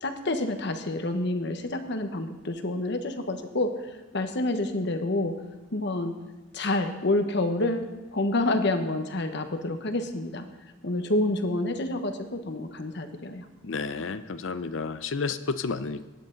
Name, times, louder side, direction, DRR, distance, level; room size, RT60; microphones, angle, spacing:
voice 1, 0.0-3.7 4.1-5.3 5.7-6.1 6.5-10.4 10.8-13.4, left 2 dB, 60° left, 7 dB, 1.1 m, -28 dB
voice 2, 13.6-16.0, left 4 dB, 80° left, 12 dB, 0.6 m, -31 dB
16.5 x 10.5 x 3.9 m, 1.1 s
head